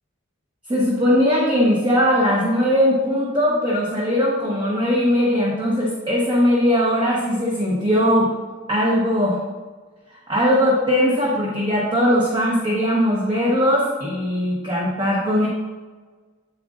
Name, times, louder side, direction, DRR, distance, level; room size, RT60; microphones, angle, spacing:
voice 1, 0.7-8.3 8.7-9.4 10.1-15.5, equal, 25° right, -4 dB, 1.0 m, -19 dB
8.2 x 7.8 x 2.5 m, 1.4 s
head